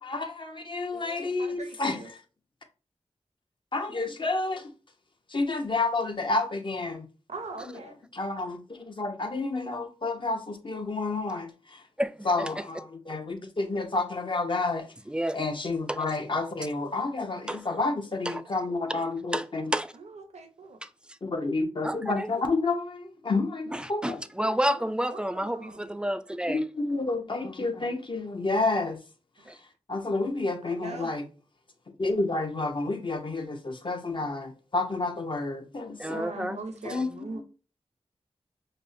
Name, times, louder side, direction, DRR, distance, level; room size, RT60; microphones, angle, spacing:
voice 1, 0.0-2.0 3.7-4.7 5.3-7.1 7.7-7.8 8.1-11.8 12.2-14.9 15.3-19.7 21.2-24.2 26.5-29.0 29.9-31.2 32.0-36.6 36.8-37.4, left 3 dB, 45° left, 0.7 m, -30 dB
voice 2, 0.9-2.1 7.3-8.0 19.9-20.8 24.6-25.9 30.6-31.1 35.9-37.4, right 3 dB, 80° right, 0.6 m, -42 dB
voice 3, 12.0-12.5 13.1-13.2 15.1-15.4 15.9-16.0 17.5-17.6 18.3-18.4 18.9-19.0 19.3-19.4 19.7-19.9 20.8-20.9 21.8-22.3 23.7-26.6 29.5-29.6 36.0-36.6 36.9-37.0, equal, 10° right, 0.3 m, -30 dB
5.1 x 2.1 x 2.6 m
wide cardioid pair, 75°, 11 cm